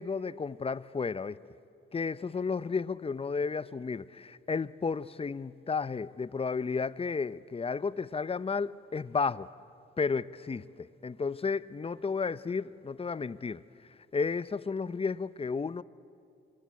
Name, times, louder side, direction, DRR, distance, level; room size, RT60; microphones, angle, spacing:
voice 1, 0.0-1.4 1.9-9.5 10.0-13.6 14.1-15.8, left 5 dB, 25° left, 0.8 m, -32 dB
26.5 x 26.5 x 8.5 m
supercardioid pair, 65°, 21 cm